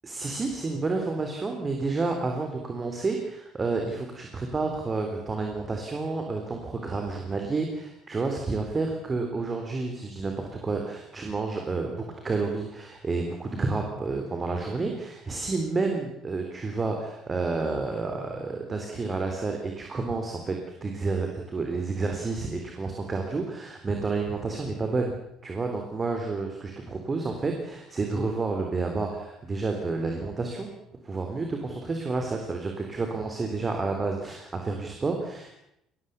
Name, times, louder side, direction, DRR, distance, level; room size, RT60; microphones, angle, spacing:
voice 1, 0.0-20.6 20.8-25.2 25.4-30.7 31.0-35.6, right 3 dB, 25° right, 3 dB, 3.9 m, -30 dB
22.0 x 20.0 x 7.1 m, 0.80 s
figure-of-eight pair, 55°, 0 cm